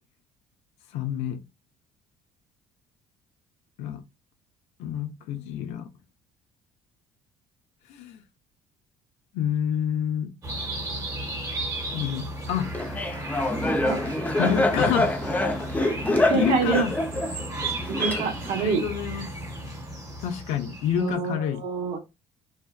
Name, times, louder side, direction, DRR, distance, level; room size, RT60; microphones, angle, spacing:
voice 1, 0.9-1.4 3.8-4.0 4.8-5.9 7.9-8.2 9.3-10.3 11.9-12.7 14.4-15.1 15.9-16.9 18.6-19.3 20.2-21.6, left 9 dB, 75° left, 0.5 m, -28 dB
sound 1, 10.4-21.1, right 2 dB, 30° right, 1.1 m, -34 dB
Laughter, 12.7-18.6, left 2 dB, 15° left, 0.5 m, -26 dB
voice 2, 16.3-16.8 17.9-18.8 21.0-22.0, right 6 dB, 80° right, 0.8 m, -27 dB
2.6 x 2.1 x 2.2 m
supercardioid pair, 90°, 11 cm